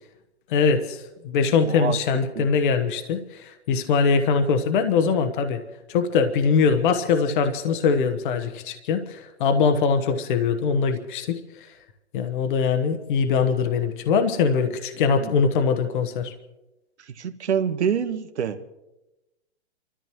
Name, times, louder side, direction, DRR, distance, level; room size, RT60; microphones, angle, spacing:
voice 1, 0.5-5.6 5.9-11.7 12.1-16.3, left 5 dB, 45° left, 8 dB, 1.1 m, -22 dB
voice 2, 1.6-2.0 2.3-2.5 17.1-18.6, right 7 dB, 75° right, 10 dB, 1.3 m, -26 dB
29.5 x 13.5 x 3.1 m, 0.96 s
hypercardioid pair, 140°, 34 cm